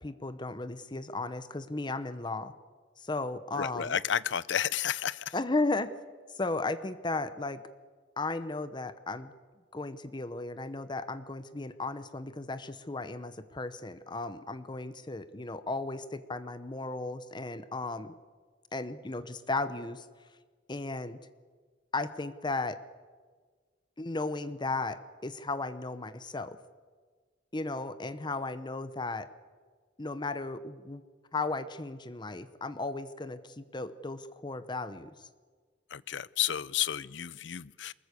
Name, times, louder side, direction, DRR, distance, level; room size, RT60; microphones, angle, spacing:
voice 1, 0.0-2.5 3.0-3.9 5.3-5.9 6.3-7.6 8.2-9.3 9.7-18.1 18.7-20.1 20.7-21.2 21.9-22.8 24.0-26.6 27.5-29.3 30.0-31.0 31.3-35.3, left 3 dB, 25° left, 13 dB, 0.8 m, -35 dB
voice 2, 3.6-5.3 35.9-37.9, left 9 dB, 70° left, 20 dB, 0.6 m, -31 dB
23.0 x 20.5 x 8.4 m, 1.5 s
head